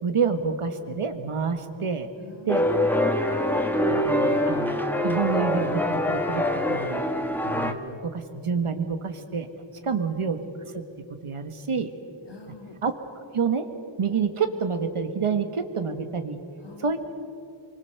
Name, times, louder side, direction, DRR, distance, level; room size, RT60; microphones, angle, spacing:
voice 1, 0.0-2.1 2.4-2.6 3.9-4.8 5.0-7.0 7.4-9.5 9.8-10.4 10.7-10.8 11.2-11.9 12.8-12.9 13.3-13.7 14.0-16.4 16.8-17.0, right 5 dB, 90° right, 7 dB, 1.7 m, -28 dB
voice 2, 2.2-3.2 9.8-10.0 12.3-12.8 16.6-17.0, left 2 dB, 55° left, 2 dB, 3.0 m, -45 dB
sound 1, 2.5-7.7, left 1 dB, 5° left, 1.6 m, -24 dB
25.0 x 24.0 x 6.8 m, 2.6 s
wide cardioid pair, 80°, 49 cm